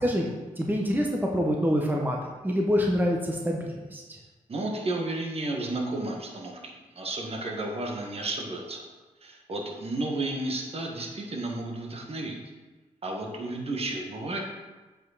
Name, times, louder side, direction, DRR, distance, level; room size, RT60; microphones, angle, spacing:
voice 1, 0.6-2.2 2.4-4.0, equal, 15° right, 0 dB, 1.3 m, -26 dB
voice 2, 4.5-8.8 9.2-12.4 13.0-14.4, right 2 dB, 50° right, 0 dB, 1.7 m, -32 dB
7.7 x 5.2 x 4.2 m, 1.2 s
cardioid pair, 60°, 13 cm